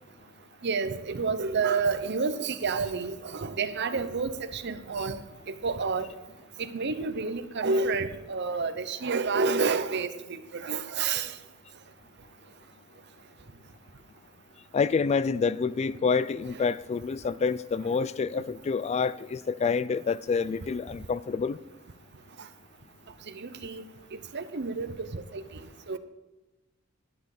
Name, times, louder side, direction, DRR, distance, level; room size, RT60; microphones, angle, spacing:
voice 1, 0.6-5.2 5.5-6.1 6.6-11.3 23.3-23.8 24.3-25.4 25.9-26.0, right 4 dB, 55° right, 0.8 m, -29 dB
voice 2, 14.7-21.6, left 5 dB, 30° left, 0.3 m, -27 dB
11.5 x 10.5 x 4.9 m
head